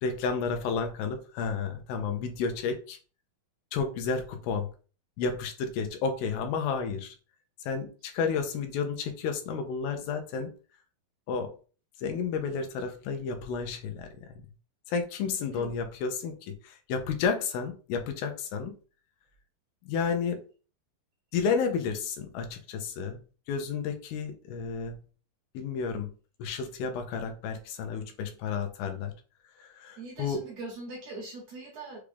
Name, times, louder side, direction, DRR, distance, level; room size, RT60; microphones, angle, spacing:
voice 1, 0.0-3.0 3.7-4.7 5.2-7.2 7.6-10.5 11.3-11.5 12.0-14.5 14.9-18.8 19.8-20.4 21.3-23.2 23.5-25.0 25.5-26.1 26.4-29.1 29.6-30.4, left 5 dB, 85° left, 2.5 m, -31 dB
voice 2, 30.0-32.0, right 2 dB, 60° right, 1.9 m, -41 dB
6.3 x 2.3 x 3.4 m
omnidirectional pair, 4.2 m